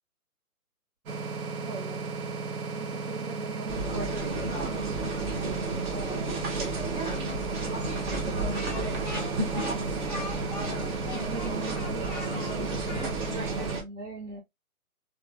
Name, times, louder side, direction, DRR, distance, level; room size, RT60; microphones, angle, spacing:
sound 1, 1.1-13.8, right 4 dB, 70° right, 1.0 m, -35 dB
voice 1, 1.6-2.2 2.7-5.3 5.6-7.0 8.2-8.7 11.0-12.1 12.5-14.4, right 3 dB, 55° right, 1.2 m, -41 dB
sound 2, 3.7-13.8, right 2 dB, 35° right, 0.8 m, -33 dB
Speech, 8.5-13.6, left 4 dB, 35° left, 0.4 m, -42 dB
2.8 x 2.4 x 2.3 m
hypercardioid pair, 145°, 44 cm